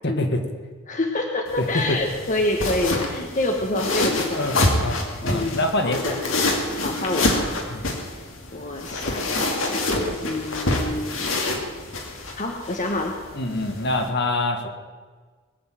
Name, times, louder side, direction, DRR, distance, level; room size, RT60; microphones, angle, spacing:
voice 1, 0.0-0.4 1.7-2.0 4.4-4.5 4.8-6.0 6.4-6.5 7.7-7.8 13.3-14.7, left 2 dB, 60° left, 5 dB, 1.9 m, -25 dB
voice 2, 0.9-4.9 5.2-6.2 6.8-7.5 8.5-11.2 12.4-13.2, left 2 dB, 40° left, 2 dB, 1.3 m, -27 dB
sound 1, 1.5-14.1, left 2 dB, 80° left, 2.5 m, -27 dB
20.5 x 7.1 x 9.1 m, 1.5 s
head